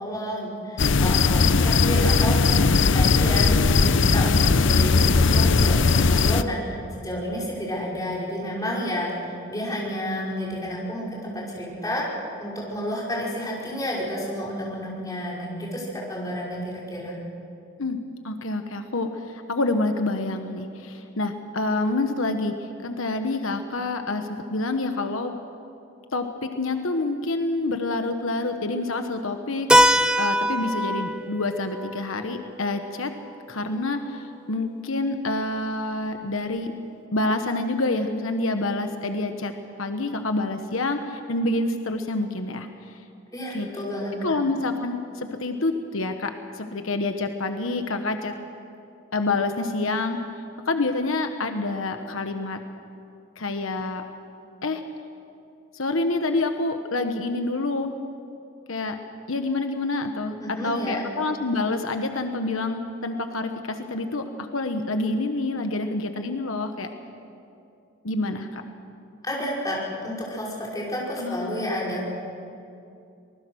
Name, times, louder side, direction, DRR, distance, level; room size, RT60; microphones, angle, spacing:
voice 1, 0.0-2.4 2.7-3.5 3.8-12.1 12.4-17.2 43.3-44.1 60.4-61.0 69.2-72.1, equal, 15° left, -5 dB, 5.2 m, -30 dB
sound 1, 0.8-6.4, left 4 dB, 65° left, 0.6 m, -19 dB
voice 2, 18.2-25.3 26.1-29.7 30.2-33.1 33.5-36.7 37.1-39.5 39.8-42.7 43.5-43.7 44.2-48.3 49.1-50.2 50.6-52.6 53.4-54.0 54.6-54.8 55.7-57.9 58.7-59.0 59.3-66.9 68.0-68.6 71.2-71.6, left 2 dB, 85° left, 6 dB, 1.2 m, -27 dB
Keyboard (musical), 29.7-34.2, equal, 5° right, 0.4 m, -24 dB
25.0 x 20.0 x 6.3 m, 2.6 s
head